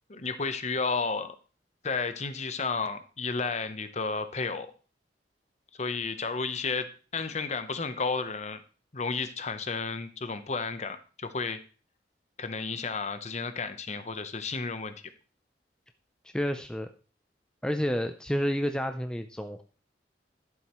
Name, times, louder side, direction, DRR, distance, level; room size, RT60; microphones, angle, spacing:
voice 1, 0.1-1.4 1.8-4.7 5.8-8.6 8.9-11.6 12.4-14.9, left 4 dB, 40° left, 11 dB, 0.8 m, -32 dB
voice 2, 16.3-16.9 17.6-19.6, equal, 5° left, 7 dB, 0.4 m, -29 dB
12.0 x 7.3 x 3.0 m, 0.37 s
head